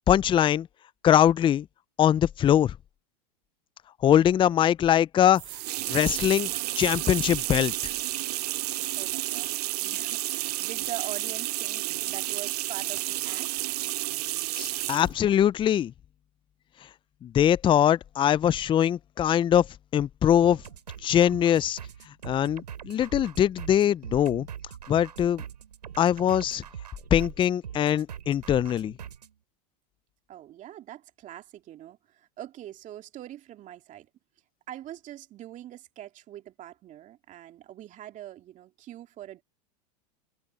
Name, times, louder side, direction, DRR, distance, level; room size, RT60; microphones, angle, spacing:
voice 1, 0.1-0.7 1.0-1.7 2.0-2.7 4.0-5.4 5.9-6.5 6.8-7.9 14.5-15.9 17.2-19.7 19.9-20.6 21.0-21.8 22.2-24.5 24.9-25.4 26.0-26.6 27.1-28.9, left 10 dB, 25° left, 0.6 m, -22 dB
sound 1, 5.3-15.1, right 17 dB, 70° right, 0.4 m, -31 dB
voice 2, 8.9-13.7 30.3-34.1 34.7-39.4, right 12 dB, 40° right, 2.6 m, -43 dB
sound 2, 20.4-29.3, right 9 dB, 85° right, 8.0 m, -42 dB
hypercardioid pair, 100°, 21 cm